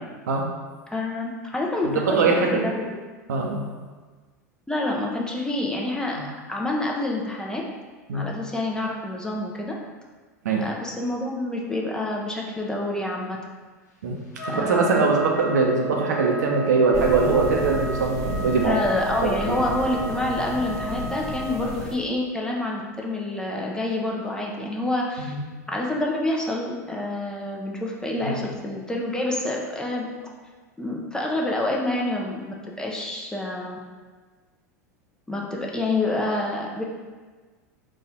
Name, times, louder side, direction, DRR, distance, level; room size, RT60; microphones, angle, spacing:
voice 1, 0.9-2.8 4.7-6.2 6.5-7.6 8.1-9.8 10.6-13.4 14.5-15.1 18.6-25.3 25.7-30.1 30.8-33.8 35.3-36.8, left 2 dB, 10° left, -1 dB, 0.7 m, -27 dB
voice 2, 1.8-2.7 3.3-3.6 6.2-6.3 8.1-8.2 10.4-10.7 14.0-14.1 14.4-18.8 19.2-19.3 25.2-25.4 28.2-28.5, right 4 dB, 75° right, 0 dB, 0.7 m, -22 dB
Trumpet, 14.4-21.7, right 1 dB, 75° left, 0.9 m, -34 dB
sound 1, 16.9-21.9, equal, 40° right, 1.0 m, -33 dB
4.1 x 2.5 x 4.2 m, 1.4 s
hypercardioid pair, 85°, 9 cm